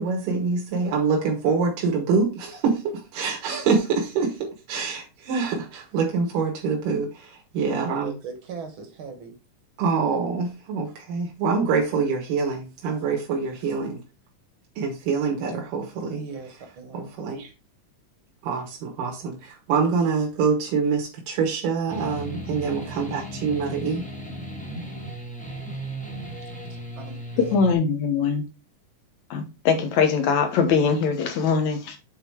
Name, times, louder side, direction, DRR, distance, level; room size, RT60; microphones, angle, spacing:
voice 1, 0.0-8.1 9.8-14.0 14.8-16.2 16.9-17.5 18.4-24.1, right 5 dB, 90° right, 3.0 m, -25 dB
voice 2, 7.7-9.3 16.1-17.1 27.0-27.6, right 5 dB, 55° right, 1.6 m, -39 dB
sound 1, 21.9-27.7, right 1 dB, 5° left, 0.6 m, -36 dB
voice 3, 27.5-28.4 29.3-32.0, left 5 dB, 65° left, 2.4 m, -22 dB
7.9 x 4.3 x 4.6 m
omnidirectional pair, 3.7 m